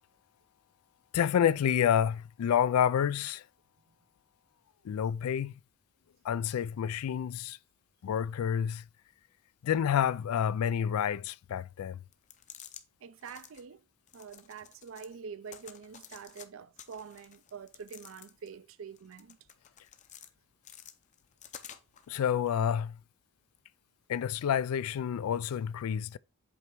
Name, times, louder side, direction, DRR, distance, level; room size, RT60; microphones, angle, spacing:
voice 1, 1.1-3.4 4.9-5.5 6.3-7.6 8.0-8.8 9.6-12.0 22.1-22.9 24.1-26.2, left 8 dB, 85° left, 0.3 m, -29 dB
sound 1, 12.1-12.8 13.2-13.6 14.1-15.1 15.5-16.5 16.8-18.6 19.0-20.3 20.6-22.1, left 9 dB, 35° left, 0.6 m, -51 dB
voice 2, 13.0-13.8 14.1-19.4, right 6 dB, 60° right, 0.5 m, -46 dB
7.9 x 3.3 x 4.5 m
head